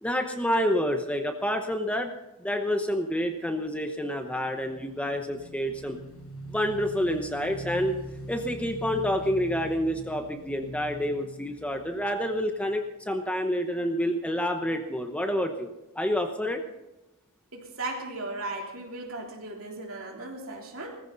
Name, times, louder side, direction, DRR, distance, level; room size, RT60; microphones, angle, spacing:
voice 1, 0.0-2.1 2.4-6.0 6.5-8.0 8.3-15.7 15.9-16.6, equal, 5° left, 5 dB, 0.9 m, -28 dB
Motorcycle / Engine, 4.7-12.8, equal, 80° left, 7.5 m, -43 dB
voice 2, 17.5-21.0, right 2 dB, 65° right, 0 dB, 3.4 m, -36 dB
19.0 x 15.0 x 4.0 m, 0.95 s
head